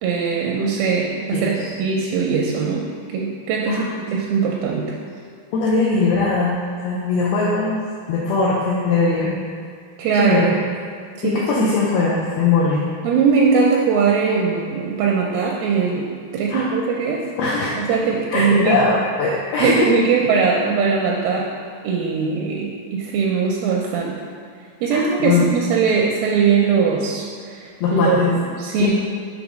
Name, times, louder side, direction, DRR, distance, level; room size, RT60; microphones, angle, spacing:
voice 1, 0.0-2.8 3.1-3.8 4.1-5.0 10.0-10.6 11.2-11.4 13.0-17.3 17.8-18.8 19.6-21.5 21.8-24.2 24.8-28.3 28.6-28.9, right 5 dB, 85° right, -2 dB, 2.2 m, -20 dB
voice 2, 1.3-1.7 3.7-3.9 5.5-7.8 8.1-9.4 10.1-10.5 11.2-12.9 16.5-16.7 17.4-17.8 18.3-19.9 24.9-25.5 27.8-28.3 28.8-28.9, left 4 dB, 80° left, -5 dB, 2.5 m, -20 dB
7.1 x 3.2 x 5.1 m, 2.2 s
omnidirectional pair, 4.7 m